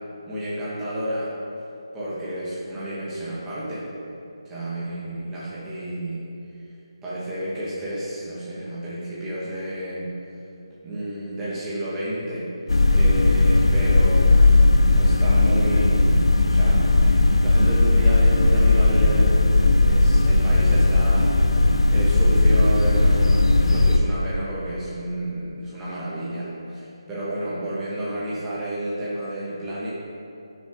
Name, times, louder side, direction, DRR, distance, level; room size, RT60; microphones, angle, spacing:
voice 1, 0.3-1.3 1.9-3.9 4.4-6.2 7.0-10.2 10.8-12.5 12.9-14.5 14.9-21.3 21.9-29.9, right 1 dB, 10° right, -9 dB, 1.6 m, -30 dB
sound 1, 12.7-24.0, left 2 dB, 85° left, 0.7 m, -17 dB
11.5 x 6.4 x 3.8 m, 2.7 s
figure-of-eight pair, 165°, 3 cm